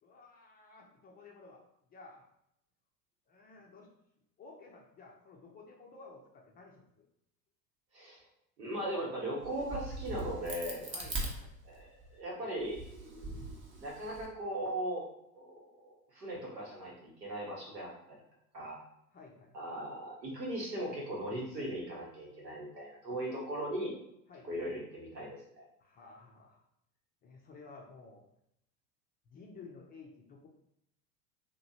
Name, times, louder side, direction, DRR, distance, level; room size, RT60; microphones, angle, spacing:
voice 1, 0.0-1.6 1.9-2.2 3.3-3.9 4.4-7.1 10.9-11.5 19.1-19.6 24.3-24.5 25.8-26.6 27.2-28.2 29.3-30.5, left 3 dB, 20° left, -1 dB, 0.4 m, -53 dB
voice 2, 8.6-10.9 11.7-15.0 15.3-18.2 18.5-18.8 19.5-23.9 24.5-25.6, right 1 dB, 90° right, -3 dB, 1.2 m, -39 dB
Crack, 9.4-12.1 12.6-14.3, right 2 dB, 25° right, 0.7 m, -41 dB
2.9 x 2.3 x 2.7 m, 0.77 s
hypercardioid pair, 85°, 48 cm